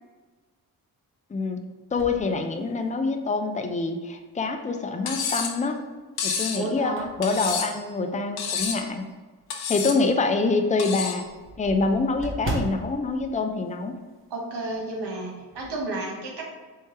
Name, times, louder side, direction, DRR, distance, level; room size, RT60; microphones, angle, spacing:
voice 1, 1.3-5.8 6.2-9.1 9.7-11.3 11.6-14.0, left 3 dB, 20° left, 5 dB, 0.5 m, -26 dB
sound 1, 1.9-3.2 3.8-3.9 5.3-5.9 6.3-9.0 9.4-9.5 9.9-10.0 10.3-10.4 10.6-14.4 14.7-14.9 15.2-15.8, right 1 dB, 30° right, 0.9 m, -38 dB
Cutlery silverware, 5.1-5.6 6.2-6.6 7.2-7.8 8.4-8.9 9.5-10.0 10.8-11.2, left 6 dB, 65° left, 0.7 m, -29 dB
voice 2, 6.5-7.0 14.3-16.5, right 2 dB, 75° right, -1 dB, 1.2 m, -32 dB
4.6 x 3.2 x 2.9 m, 1.3 s
supercardioid pair, 50°, 40 cm